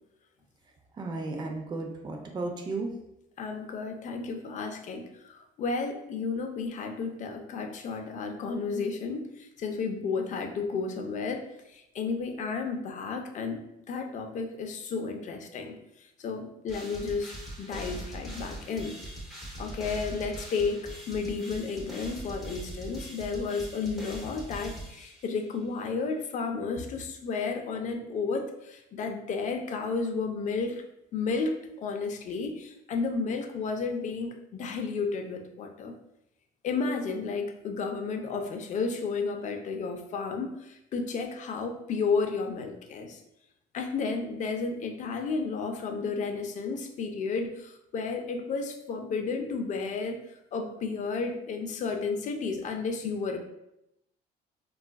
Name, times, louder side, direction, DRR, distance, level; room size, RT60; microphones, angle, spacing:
voice 1, 0.9-2.9, right 3 dB, 25° right, 2 dB, 0.5 m, -34 dB
voice 2, 3.4-13.6 13.9-15.8 16.2-19.0 19.6-30.8 31.1-35.9 36.6-43.2 43.7-50.2 50.5-53.4, left 4 dB, 45° left, 4 dB, 0.5 m, -32 dB
sound 1, 16.7-25.5, right 1 dB, ahead, 0.8 m, -41 dB
3.5 x 2.4 x 2.2 m, 0.83 s
cardioid pair, 110°, 17 cm